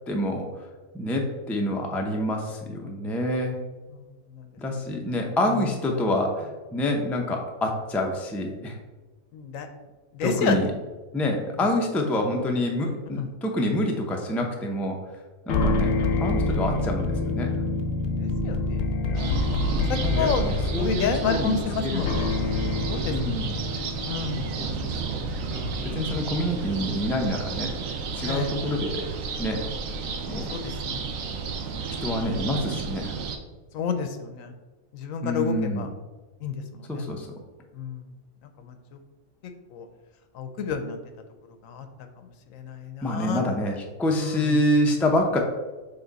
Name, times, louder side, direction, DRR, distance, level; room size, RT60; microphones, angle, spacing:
voice 1, 0.1-0.7 0.9-3.6 4.6-8.8 10.2-10.7 11.1-15.0 15.5-16.0 16.2-17.6 19.9-22.0 23.1-23.6 24.6-25.2 25.8-27.8 28.1-29.1 29.4-29.7 30.3-30.5 32.0-33.1 35.2-35.9 36.9-37.3 43.0-45.4, left 1 dB, ahead, 1 dB, 0.4 m, -27 dB
voice 2, 9.3-9.7 10.1-10.6 13.2-13.3 18.2-20.5 20.8-22.3 22.9-23.1 24.1-24.7 25.9-26.3 28.2-28.5 30.5-31.0 33.7-34.5 34.9-35.9 36.4-37.0 37.8-38.0 38.6-38.7 39.7-39.9 40.3-41.0 41.6-41.8 42.5-43.4 44.2-44.4, left 5 dB, 80° left, 7 dB, 1.1 m, -30 dB
sound 1, 15.5-26.9, left 2 dB, 60° left, 0.8 m, -27 dB
sound 2, 19.1-33.4, right 5 dB, 75° right, 1.1 m, -33 dB
6.9 x 3.6 x 4.0 m, 1.3 s
omnidirectional pair, 1.4 m